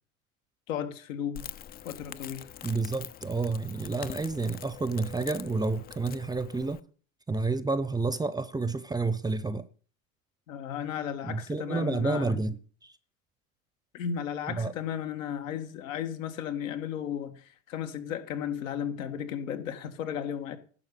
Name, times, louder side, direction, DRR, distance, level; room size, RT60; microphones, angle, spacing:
voice 1, 0.7-1.5 1.8-2.5 10.5-12.3 13.9-20.6, left 9 dB, 75° left, 1.8 m, -34 dB
Crackle, 1.3-6.8, left 10 dB, 25° left, 0.5 m, -44 dB
voice 2, 2.6-6.8 7.3-9.7 11.2-12.9 14.5-14.7, right 3 dB, 10° right, 0.7 m, -30 dB
11.0 x 5.5 x 8.5 m
hypercardioid pair, 100°, 39 cm